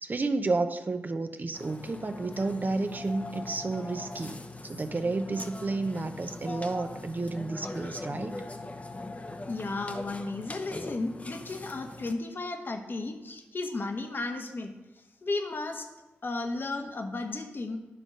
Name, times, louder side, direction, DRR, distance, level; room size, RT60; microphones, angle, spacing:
voice 1, 0.0-8.4, right 3 dB, 40° right, 8 dB, 0.8 m, -31 dB
Burping eructation, 1.5-12.1, left 2 dB, 30° left, 0.9 m, -41 dB
voice 2, 9.5-14.7 15.2-15.9 16.2-17.8, left 3 dB, 50° left, 6 dB, 1.1 m, -34 dB
10.5 x 3.8 x 6.4 m, 1.1 s
supercardioid pair, 40°, 5 cm